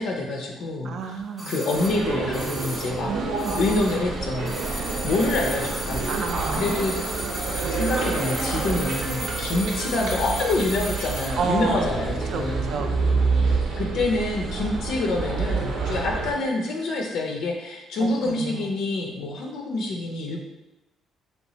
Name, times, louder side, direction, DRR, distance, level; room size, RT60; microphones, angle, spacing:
voice 1, 0.0-1.2 1.5-3.1 3.6-6.1 6.5-6.9 7.7-12.7 13.7-20.4, left 2 dB, 70° left, 1 dB, 0.4 m, -27 dB
voice 2, 0.8-1.6 3.0-3.6 6.1-6.7 11.4-11.9 12.3-13.1 18.0-18.7, right 5 dB, 55° right, 5 dB, 0.3 m, -30 dB
sound 1, 1.4-4.1 4.4-11.4 11.7-11.8, right 1 dB, 10° right, 0.6 m, -35 dB
sound 2, 1.7-16.3, right 4 dB, 85° right, 0.7 m, -28 dB
3.3 x 2.9 x 2.7 m, 1.0 s
cardioid pair, 170°, 0 cm